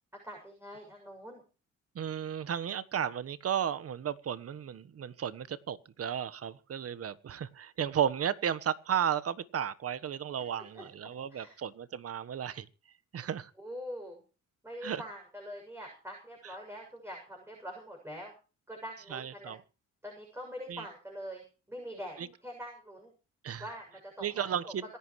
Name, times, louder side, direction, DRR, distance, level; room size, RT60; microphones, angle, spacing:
voice 1, 0.2-1.4 10.7-10.8 11.3-11.6 13.6-14.2 14.6-18.3 18.7-19.5 20.0-23.1 23.6-24.7, equal, 10° right, 0 dB, 7.1 m, -44 dB
voice 2, 1.9-12.7 13.1-13.5 14.8-15.0 19.1-19.6 20.7-20.8 22.2-22.3 23.4-23.6 24.2-24.8, right 9 dB, 50° right, 15 dB, 1.3 m, -34 dB
26.5 x 11.5 x 3.2 m, 0.34 s
cardioid pair, 90°, 30 cm